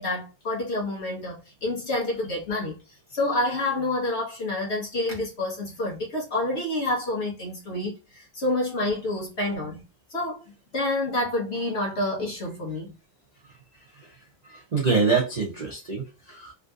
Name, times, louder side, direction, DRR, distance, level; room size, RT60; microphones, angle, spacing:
voice 1, 0.0-2.7 3.1-9.8 10.1-10.4 10.7-12.9, left 2 dB, 45° left, 1.1 m, -28 dB
voice 2, 14.4-16.5, right 4 dB, 60° right, 0.4 m, -26 dB
3.5 x 2.6 x 2.3 m
omnidirectional pair, 2.0 m